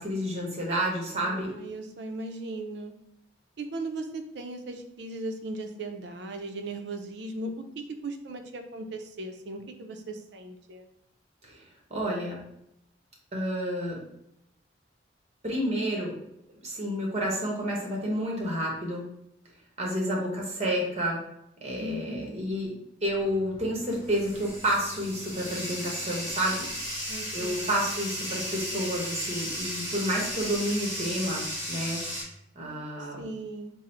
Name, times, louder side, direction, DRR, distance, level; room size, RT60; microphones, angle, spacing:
voice 1, 0.0-1.5 11.4-11.6 11.9-12.4 13.3-14.0 15.4-16.1 16.6-19.0 19.8-21.2 21.6-22.7 23.0-26.7 27.3-32.0 32.5-33.2, equal, 35° right, -2 dB, 1.0 m, -30 dB
voice 2, 1.2-2.9 3.6-7.5 8.0-10.9 21.8-22.5 27.1-27.8 33.0-33.7, right 2 dB, 70° right, 6 dB, 0.5 m, -38 dB
Bathtub (filling or washing), 23.0-32.2, equal, 15° right, 1.4 m, -35 dB
3.7 x 2.0 x 4.2 m, 0.80 s
head